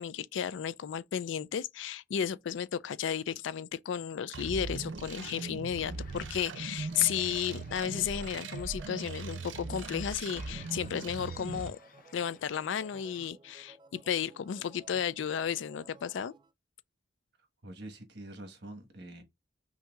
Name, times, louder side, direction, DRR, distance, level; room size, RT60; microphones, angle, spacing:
voice 1, 0.0-11.8 12.1-16.3, left 8 dB, 80° left, 0.4 m, -33 dB
sound 1, 4.3-11.7, right 4 dB, 80° right, 0.6 m, -40 dB
sound 2, 5.7-13.3, left 5 dB, 50° left, 0.7 m, -58 dB
sound 3, 6.7-16.5, right 3 dB, 25° right, 0.3 m, -56 dB
voice 2, 17.6-19.2, right 1 dB, 60° right, 1.2 m, -45 dB
5.7 x 2.7 x 2.3 m
head